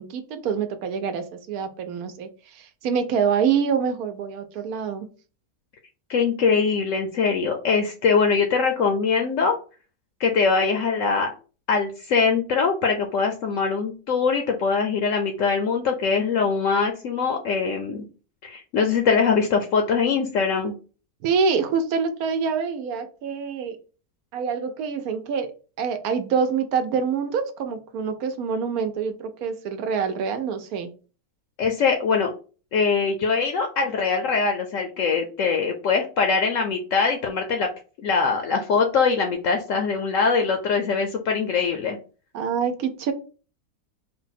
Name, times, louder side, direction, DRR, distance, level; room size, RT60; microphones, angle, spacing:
voice 1, 0.0-5.1 21.2-23.8 24.3-30.9 42.3-43.1, right 6 dB, 80° right, 8 dB, 1.1 m, -26 dB
voice 2, 6.1-9.5 10.2-11.3 11.7-18.0 18.4-20.7 31.6-32.3 32.7-37.7 38.0-42.0, left 5 dB, 70° left, 4 dB, 0.9 m, -22 dB
4.0 x 2.2 x 4.0 m, 0.36 s
omnidirectional pair, 1.6 m